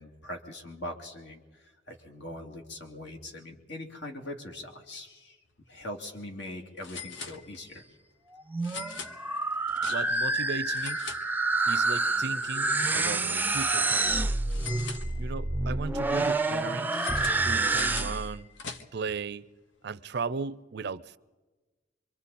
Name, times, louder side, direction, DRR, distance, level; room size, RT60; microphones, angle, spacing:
voice 1, 0.0-5.4 5.7-7.8, left 1 dB, 70° left, 2.7 m, -42 dB
sound 1, 5.6-5.8 6.1-6.2 6.8-7.9 8.6-10.3 10.6-11.8 12.1-13.5 14.5-15.6 16.9-19.1, left 6 dB, 85° left, 1.2 m, -43 dB
sound 2, 8.3-18.4, right 3 dB, 10° right, 0.6 m, -28 dB
voice 2, 9.9-11.0 11.7-14.3 15.2-16.9 17.4-18.5 18.9-19.5 19.8-21.2, right 4 dB, 65° right, 0.6 m, -36 dB
26.5 x 24.0 x 4.2 m
head